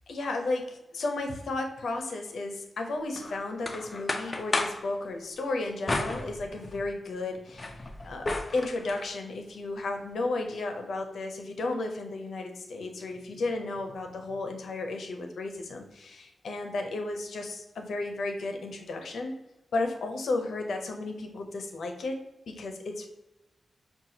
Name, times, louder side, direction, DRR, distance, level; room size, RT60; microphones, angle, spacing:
voice 1, 0.1-7.8 8.0-19.4 19.7-22.2 22.5-23.1, left 2 dB, 85° left, 4 dB, 0.6 m, -33 dB
sound 1, 3.2-4.9 5.9-6.9 7.3-9.1, left 2 dB, 30° left, 0.4 m, -33 dB
5.6 x 2.3 x 2.7 m, 0.97 s
wide cardioid pair, 125°, 0 cm